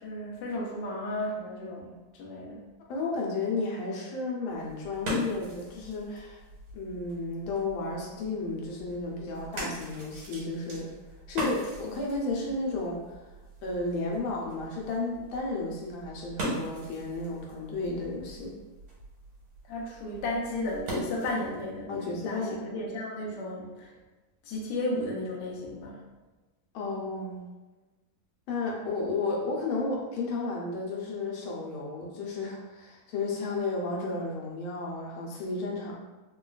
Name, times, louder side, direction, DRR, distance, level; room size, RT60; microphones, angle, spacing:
voice 1, 0.0-2.7 19.7-23.9 24.4-26.0, left 1 dB, 65° left, -3 dB, 1.2 m, -34 dB
voice 2, 2.9-6.4 6.7-10.9 11.3-13.2 13.6-18.5 21.9-22.8 26.7-27.4 28.5-35.9, left 3 dB, 85° left, -2 dB, 1.5 m, -33 dB
sound 1, 4.5-21.6, right 1 dB, 90° right, 1.8 m, -40 dB
3.8 x 2.2 x 2.3 m, 1.2 s
omnidirectional pair, 2.2 m